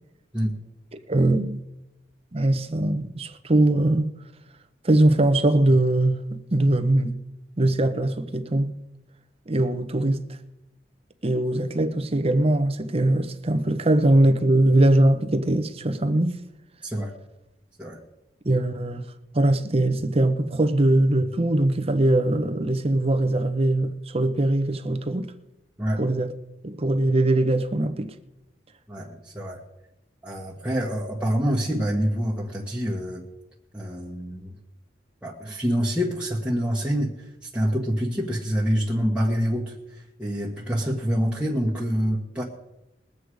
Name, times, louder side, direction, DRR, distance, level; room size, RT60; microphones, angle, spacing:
voice 1, 1.1-1.6 2.3-4.1 4.8-7.2 7.6-8.8 9.5-10.4 11.2-16.4 18.4-19.0 19.3-25.3 26.0-26.3 26.6-28.1, right 1 dB, 35° right, 0.9 m, -21 dB
voice 2, 16.8-17.1 17.8-18.0 25.8-26.0 28.9-29.6 30.2-33.2 33.7-34.6 35.2-42.4, equal, 5° right, 1.5 m, -26 dB
21.0 x 8.1 x 4.9 m
head